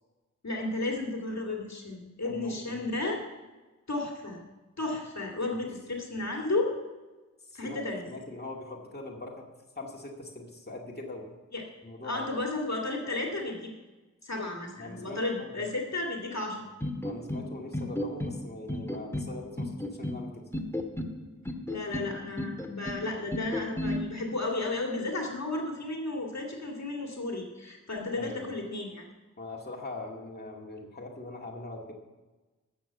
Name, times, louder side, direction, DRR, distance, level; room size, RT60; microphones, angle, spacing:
voice 1, 0.4-3.2 3.9-4.4 4.8-6.7 7.5-8.2 11.5-11.6 12.0-13.7 14.2-16.6 21.7-29.1, left 2 dB, 55° left, 0 dB, 2.2 m, -33 dB
voice 2, 2.2-2.8 5.6-5.7 7.5-9.4 9.8-11.3 11.8-12.3 14.8-15.6 17.0-20.4 28.2-28.5 29.4-31.9, left 2 dB, 30° left, -1 dB, 2.2 m, -42 dB
sound 1, 16.8-17.4 17.7-18.4 18.7-19.3 19.6-20.2 20.5-21.1 21.4-22.1 22.4-23.0 23.3-24.0, left 1 dB, 10° left, 1.7 m, -33 dB
13.0 x 7.1 x 8.0 m, 1.2 s
cardioid pair, 50°, 32 cm